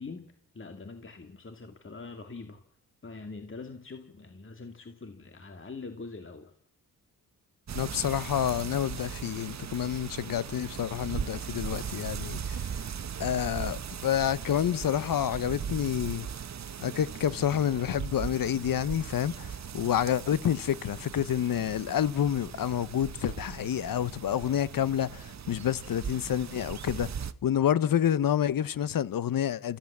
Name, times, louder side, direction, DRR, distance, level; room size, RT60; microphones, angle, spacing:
voice 1, 0.0-2.6 3.0-6.5, left 4 dB, 30° left, 2.4 m, -43 dB
voice 2, 7.7-12.7 13.2-16.3 16.8-27.1 27.4-29.8, left 10 dB, 60° left, 1.0 m, -28 dB
sound 1, 7.7-27.3, right 7 dB, 45° right, 1.1 m, -39 dB
29.0 x 14.5 x 7.4 m
cardioid pair, 75°, 38 cm